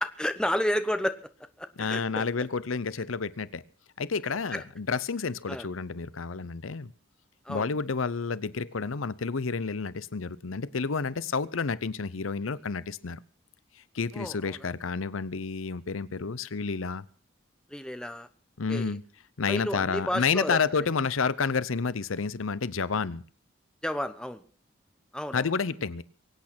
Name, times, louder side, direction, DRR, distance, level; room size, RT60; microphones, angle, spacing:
voice 1, 0.0-1.2 1.6-2.2 4.5-4.6 5.5-5.7 7.4-7.7 14.1-14.7 17.7-18.3 18.7-19.0 19.5-20.6 23.8-24.4 25.1-25.5, equal, 5° left, 1.0 m, -31 dB
voice 2, 1.8-3.6 4.0-6.9 7.5-13.2 13.9-17.0 18.6-19.0 19.4-23.2 25.3-26.0, left 5 dB, 90° left, 0.7 m, -30 dB
23.5 x 8.7 x 6.1 m
head